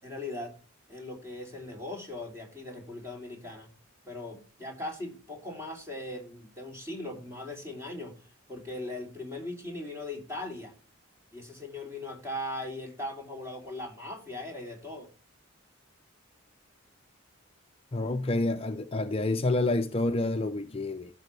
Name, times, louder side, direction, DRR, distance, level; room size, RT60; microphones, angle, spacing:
voice 1, 0.0-0.5 0.9-3.7 4.1-8.1 8.5-10.7 11.3-15.1, left 1 dB, 15° right, 3.0 m, -39 dB
voice 2, 17.9-21.1, left 2 dB, 30° left, 0.6 m, -28 dB
15.0 x 6.1 x 3.3 m
head